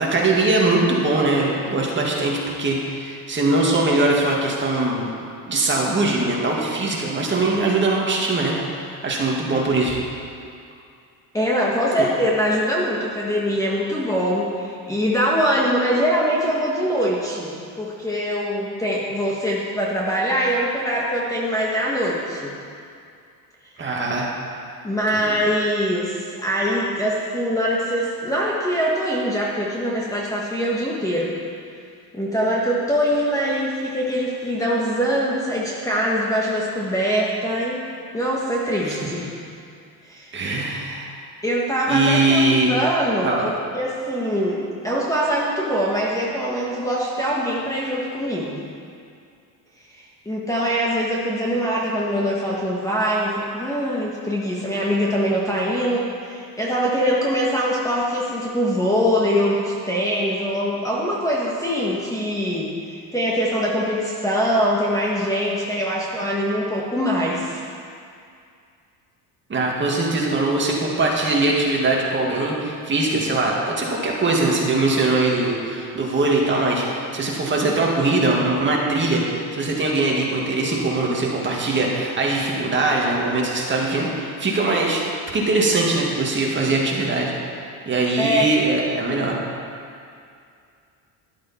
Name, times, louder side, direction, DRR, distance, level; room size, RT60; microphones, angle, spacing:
voice 1, 0.0-5.1 5.5-10.0 12.0-12.1 23.8-24.3 25.1-25.4 38.9-39.0 40.3-41.1 41.9-42.7 43.2-43.5 69.5-85.0 85.3-87.3 87.8-89.4, right 2 dB, 25° right, -2 dB, 2.0 m, -21 dB
voice 2, 11.3-22.6 23.8-23.9 24.8-31.4 32.1-37.8 38.1-39.4 40.1-40.5 41.4-42.4 42.7-43.3 43.7-48.6 49.9-67.6 88.2-88.5, equal, 10° left, -5 dB, 1.4 m, -23 dB
13.0 x 11.5 x 4.4 m, 2.4 s
cardioid pair, 140°, 43 cm